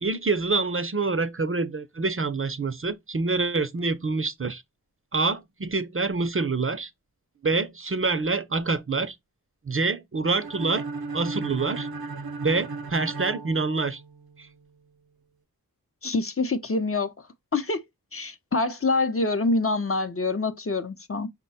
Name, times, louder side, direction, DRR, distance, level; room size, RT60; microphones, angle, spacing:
voice 1, 0.0-4.6 5.1-6.9 7.4-9.2 9.6-10.9 11.1-11.9 12.4-14.0 14.4-14.5, right 3 dB, 35° right, 0.6 m, -26 dB
sound 1, 10.4-14.3, right 3 dB, 85° right, 0.7 m, -35 dB
voice 2, 16.0-17.3 17.5-17.8 18.1-21.3, left 3 dB, 40° left, 0.7 m, -26 dB
5.5 x 2.2 x 4.1 m
wide cardioid pair, 45°, 36 cm